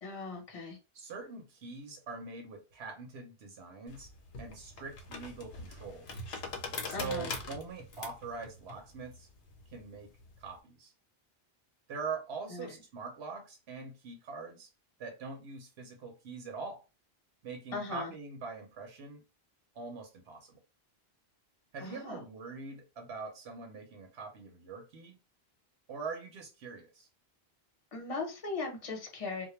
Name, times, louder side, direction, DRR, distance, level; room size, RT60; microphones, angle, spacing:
voice 1, 0.0-0.8 6.9-7.4 12.5-12.7 17.7-18.1 21.8-22.2 27.9-29.5, left 3 dB, 35° left, 0.8 m, -38 dB
voice 2, 0.9-4.1 4.4-6.2 6.9-9.3 9.7-10.1 10.4-10.9 11.9-14.7 15.0-16.8 17.4-19.2 19.7-20.6 21.7-25.2 25.9-27.1, right 4 dB, 85° right, 0.9 m, -43 dB
sound 1, 3.9-10.5, left 3 dB, 75° left, 0.9 m, -43 dB
2.2 x 2.1 x 3.0 m
omnidirectional pair, 1.1 m